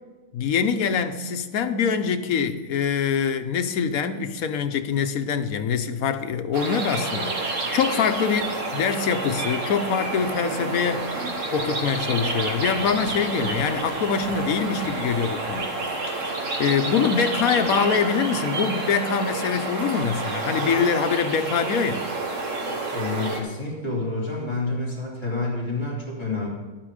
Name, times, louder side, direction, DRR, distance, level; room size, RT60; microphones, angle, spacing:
voice 1, 0.3-16.2 16.6-22.0, left 6 dB, 80° left, 9 dB, 1.2 m, -24 dB
sound 1, 6.5-23.4, right 2 dB, 60° right, 1.8 m, -29 dB
voice 2, 22.9-26.5, left 3 dB, 20° left, -6 dB, 3.5 m, -28 dB
12.0 x 8.9 x 5.0 m, 1.2 s
omnidirectional pair, 1.5 m